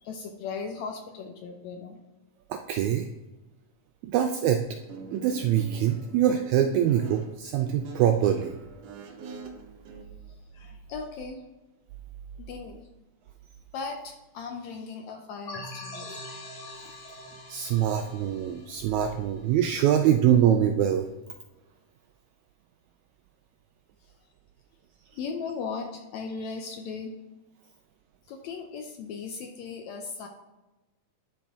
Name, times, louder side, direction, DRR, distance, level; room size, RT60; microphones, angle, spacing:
voice 1, 0.0-2.0 10.5-11.4 12.4-12.9 13.7-16.2 25.1-27.1 28.3-30.3, left 5 dB, 75° left, 3 dB, 1.7 m, -37 dB
voice 2, 2.5-3.1 4.0-4.6 5.1-8.6 17.5-21.1, right 10 dB, 85° right, 6 dB, 1.6 m, -24 dB
Guitar, 4.7-10.0, right 4 dB, 65° right, 1.7 m, -42 dB
sound 1, 15.5-19.9, left 1 dB, 55° left, 2.1 m, -43 dB
11.5 x 4.4 x 3.5 m, 1.0 s
omnidirectional pair, 3.7 m